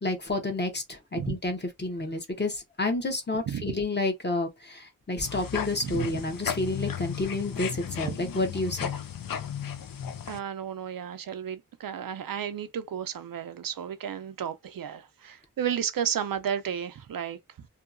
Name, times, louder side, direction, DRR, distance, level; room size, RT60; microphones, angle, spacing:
voice 1, 0.0-8.9, left 2 dB, 30° left, 0.8 m, -30 dB
sound 1, 5.2-10.4, left 8 dB, 75° left, 0.5 m, -35 dB
voice 2, 10.3-17.7, right 8 dB, 70° right, 0.5 m, -33 dB
2.7 x 2.2 x 2.5 m
wide cardioid pair, 75°, 35 cm